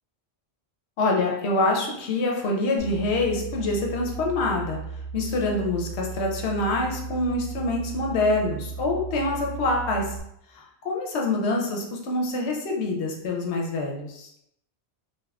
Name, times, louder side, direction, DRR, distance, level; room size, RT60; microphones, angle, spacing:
voice 1, 1.0-4.8 5.1-10.2 10.6-14.3, left 2 dB, 85° left, 0 dB, 0.9 m, -26 dB
sound 1, 2.8-10.2, right 5 dB, 50° left, 0.8 m, -36 dB
3.5 x 2.2 x 2.3 m, 0.77 s
omnidirectional pair, 1.1 m